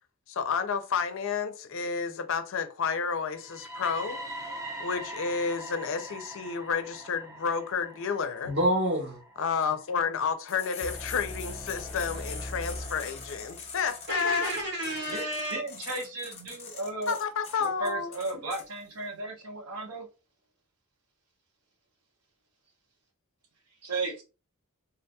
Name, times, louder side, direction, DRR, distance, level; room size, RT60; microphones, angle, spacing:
voice 1, 0.3-4.2 4.8-8.5 9.4-14.5 17.1-18.1, left 6 dB, 60° left, 0.5 m, -30 dB
sound 1, 3.3-11.2, right 1 dB, 15° right, 0.6 m, -43 dB
voice 2, 8.4-9.2 14.1-15.6, right 1 dB, 50° right, 1.5 m, -29 dB
sound 2, 10.5-18.6, left 5 dB, 30° left, 0.8 m, -43 dB
sound 3, 10.8-13.9, left 1 dB, 30° right, 1.3 m, -40 dB
voice 3, 15.1-17.2 17.6-20.1 23.8-24.2, right 2 dB, 90° right, 0.9 m, -35 dB
3.6 x 2.8 x 2.3 m
head